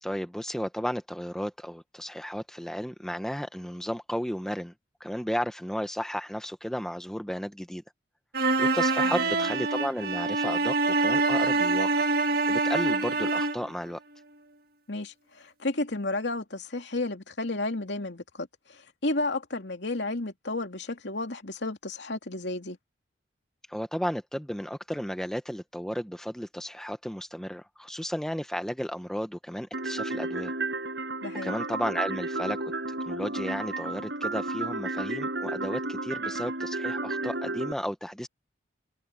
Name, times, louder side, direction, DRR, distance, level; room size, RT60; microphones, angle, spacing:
voice 1, 0.0-4.7 5.0-7.8 8.6-12.1 12.5-14.0 23.7-30.5 31.4-32.6 33.1-38.3, equal, 5° left, 0.9 m, -33 dB
sound 1, 8.3-13.7, right 3 dB, 50° right, 2.0 m, -25 dB
voice 2, 9.0-9.5 14.9-22.8 31.2-31.6, left 2 dB, 70° left, 2.6 m, -32 dB
sound 2, 29.7-37.7, right 2 dB, 70° right, 6.5 m, -32 dB
head